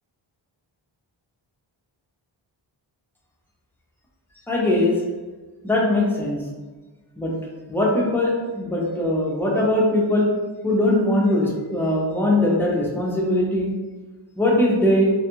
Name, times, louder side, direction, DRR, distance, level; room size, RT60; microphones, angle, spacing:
voice 1, 4.5-5.0 5.6-6.4 7.2-7.3 7.7-10.3 10.6-13.7 14.4-15.1, left 1 dB, 5° left, -3 dB, 0.4 m, -20 dB
2.5 x 2.3 x 2.9 m, 1.3 s
wide cardioid pair, 140°, 47 cm